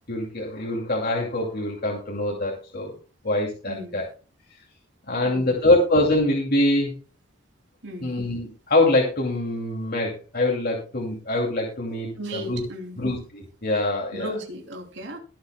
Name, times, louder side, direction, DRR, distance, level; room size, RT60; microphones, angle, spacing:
voice 1, 0.1-2.9 3.2-4.0 5.1-6.9 8.0-12.6 13.0-14.3, left 2 dB, 50° left, -1 dB, 2.5 m, -24 dB
voice 2, 3.7-4.0 5.2-5.7 7.8-8.1 12.2-13.0 14.1-15.2, equal, 60° right, 4 dB, 3.0 m, -36 dB
22.0 x 7.9 x 2.2 m, 0.34 s
head